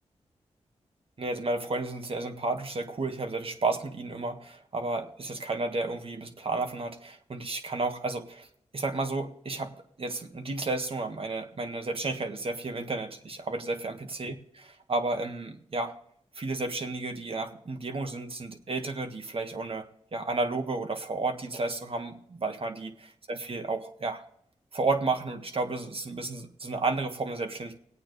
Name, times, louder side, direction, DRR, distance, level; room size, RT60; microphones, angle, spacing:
voice 1, 1.2-8.5 8.7-9.7 10.0-15.9 16.4-19.8 20.1-22.9 23.3-24.2 24.7-27.8, right 3 dB, 50° right, 6 dB, 1.8 m, -32 dB
19.5 x 8.7 x 3.3 m, 0.69 s
cardioid pair, 50°, 12 cm